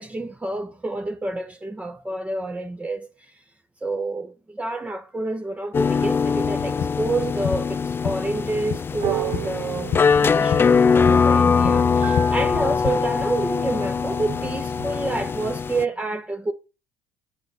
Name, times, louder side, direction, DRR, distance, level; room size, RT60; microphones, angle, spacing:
voice 1, 0.0-3.1 3.8-16.5, right 2 dB, 15° right, 1.0 m, -28 dB
sound 1, 5.7-15.8, left 5 dB, 30° left, 0.4 m, -22 dB
sound 2, 6.4-12.9, left 8 dB, 55° left, 1.1 m, -32 dB
sound 3, 8.9-14.9, right 14 dB, 65° right, 0.6 m, -34 dB
8.9 x 5.4 x 5.9 m
hypercardioid pair, 75°, 8 cm